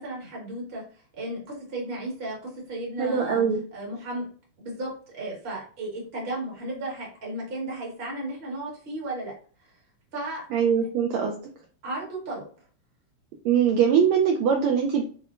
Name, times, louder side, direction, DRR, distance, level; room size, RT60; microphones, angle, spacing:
voice 1, 0.0-3.4 3.7-4.2 4.6-9.3 9.6-9.8 10.1-10.4 11.8-12.4, right 1 dB, 35° right, -4 dB, 1.0 m, -34 dB
voice 2, 3.0-3.6 10.5-11.3 13.4-15.0, right 7 dB, 80° right, 0 dB, 1.6 m, -22 dB
6.0 x 2.2 x 2.5 m, 0.42 s
omnidirectional pair, 3.7 m